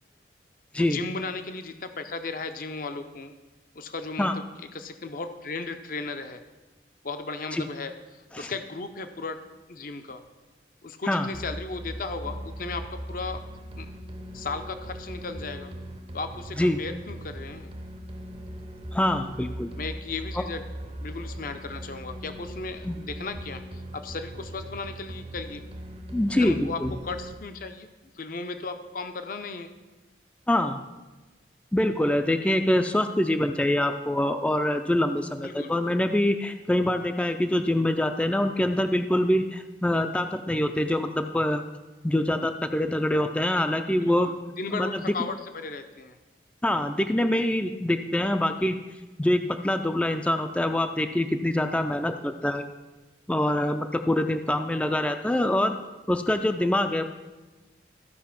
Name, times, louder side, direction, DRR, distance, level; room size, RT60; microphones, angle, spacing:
voice 1, 0.8-3.3 3.7-4.3 4.7-6.4 7.0-9.4 9.7-10.2 10.8-13.4 13.7-13.9 14.3-15.7 16.1-17.7 19.8-20.6 20.9-25.6 26.4-27.9 28.1-29.7 35.4-35.7 44.0-46.2 54.7-55.0, left 3 dB, 50° left, 8 dB, 0.6 m, -36 dB
sound 1, 11.3-27.3, equal, 30° right, 0.6 m, -39 dB
voice 2, 18.9-19.7 22.9-23.0 26.1-26.5 26.8-26.9 30.5-30.8 31.7-41.6 42.0-44.3 44.7-45.0 46.6-48.8 49.2-52.6 53.3-55.8 56.1-57.0, left 1 dB, 5° left, 7 dB, 0.3 m, -25 dB
14.0 x 5.1 x 5.8 m, 1.2 s
head